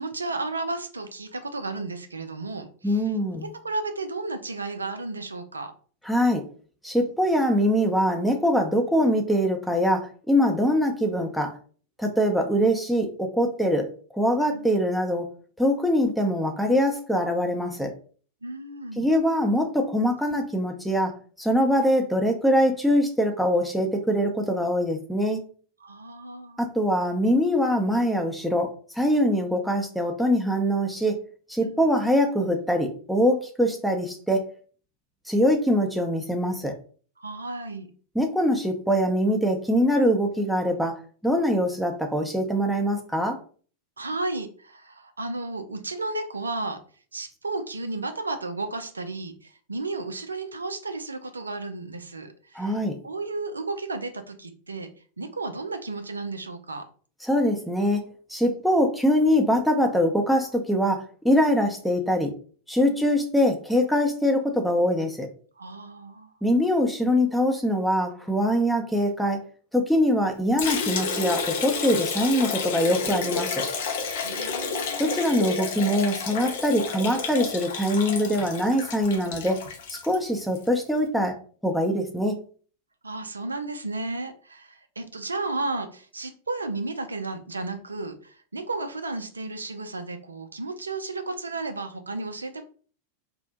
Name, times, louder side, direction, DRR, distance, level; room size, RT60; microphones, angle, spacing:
voice 1, 0.0-3.1 3.4-5.7 14.5-14.8 18.4-19.1 25.8-26.7 31.6-31.9 37.2-37.9 44.0-46.8 47.1-52.8 53.0-54.9 55.2-56.8 62.8-63.0 65.6-66.3 74.2-75.1 83.0-92.6, right 3 dB, 75° right, 8 dB, 0.4 m, -33 dB
voice 2, 2.8-3.5 6.1-6.4 6.8-11.5 12.0-13.9 14.1-15.3 15.6-17.9 19.0-21.1 21.4-25.4 26.6-28.7 29.0-31.2 31.5-34.5 35.3-36.7 38.2-41.0 41.2-43.4 52.5-52.9 57.3-58.0 58.3-62.3 62.7-65.3 66.4-69.4 69.7-73.6 75.0-79.6 79.9-81.4 81.6-82.3, equal, ahead, 3 dB, 0.5 m, -23 dB
Liquid, 70.6-80.7, left 5 dB, 55° left, 0.5 m, -30 dB
2.6 x 2.1 x 3.8 m, 0.43 s
figure-of-eight pair, 90°, 0 cm